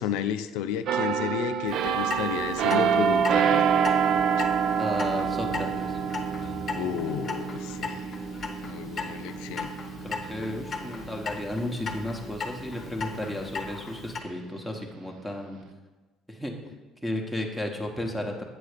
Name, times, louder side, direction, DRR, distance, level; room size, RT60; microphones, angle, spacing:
voice 1, 0.0-3.6 4.4-4.5 6.8-8.0 8.6-9.7, left 9 dB, 90° left, 10 dB, 0.4 m, -32 dB
sound 1, 0.9-12.4 12.8-13.1, right 7 dB, 60° right, 0.4 m, -27 dB
Clock, 1.7-14.2, left 4 dB, 35° left, 0.9 m, -38 dB
voice 2, 4.8-6.0 10.0-15.6 16.3-16.5 17.0-18.4, left 1 dB, 5° right, 2 dB, 1.0 m, -33 dB
7.9 x 4.1 x 6.6 m, 1.2 s
cardioid pair, 115°, 0 cm